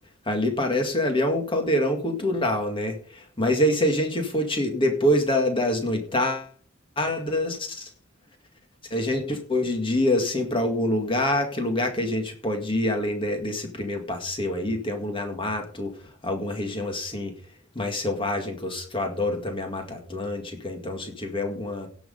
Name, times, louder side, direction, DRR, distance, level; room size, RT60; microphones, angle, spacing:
voice 1, 0.3-6.5 7.0-7.9 8.9-15.9 16.2-17.3 17.8-21.9, left 1 dB, 25° left, 4 dB, 2.0 m, -26 dB
18.0 x 6.2 x 5.4 m, 0.43 s
head